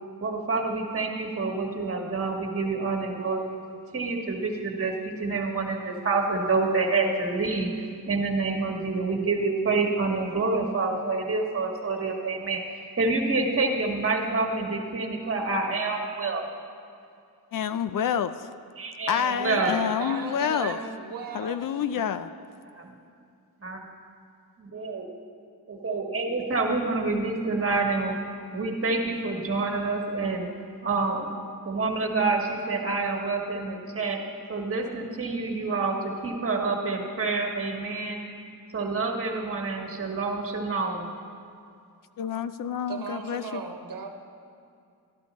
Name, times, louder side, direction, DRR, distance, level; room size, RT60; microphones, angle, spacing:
voice 1, 0.2-3.5 3.9-7.7 8.1-12.6 13.0-16.4 18.8-19.9 20.6-20.7 23.6-23.8 24.7-25.1 25.7-28.2 28.5-30.5 30.8-31.3 31.6-34.2 34.5-38.2 38.7-41.1, right 3 dB, 35° right, 1 dB, 1.5 m, -27 dB
voice 2, 17.5-18.5 19.1-20.8 21.3-22.3 42.2-43.6, left 8 dB, 60° left, 12 dB, 0.5 m, -28 dB
voice 3, 19.9-21.6 42.9-44.1, right 5 dB, 60° right, 3 dB, 1.2 m, -37 dB
13.0 x 11.5 x 4.1 m, 2.4 s
wide cardioid pair, 110°, 38 cm